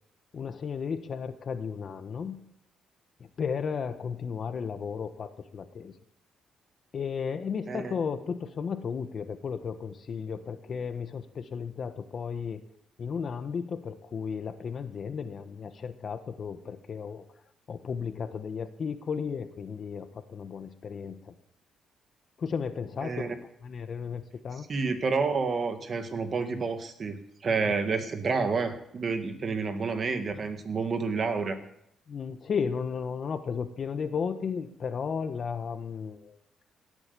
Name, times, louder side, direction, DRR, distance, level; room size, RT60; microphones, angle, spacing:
voice 1, 0.3-2.4 3.4-5.9 6.9-12.6 13.0-17.2 17.7-21.3 22.4-23.3 23.6-24.7 27.6-27.7 32.1-36.4, left 6 dB, 50° left, 10 dB, 1.3 m, -34 dB
voice 2, 23.0-23.3 24.7-31.6, right 4 dB, 45° right, 8 dB, 1.8 m, -29 dB
17.5 x 8.1 x 7.0 m, 0.75 s
cardioid pair, 90°, 0 cm